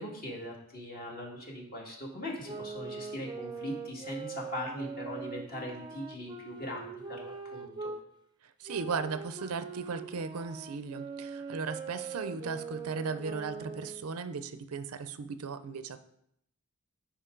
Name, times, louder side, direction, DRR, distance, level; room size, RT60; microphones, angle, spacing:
voice 1, 0.0-7.9, left 1 dB, 45° left, -2 dB, 2.0 m, -40 dB
sound 1, 2.4-8.0 8.7-14.1, right 5 dB, 20° right, 0.5 m, -42 dB
voice 2, 8.6-16.0, right 4 dB, 90° right, 12 dB, 0.5 m, -37 dB
9.8 x 5.0 x 3.8 m, 0.76 s
head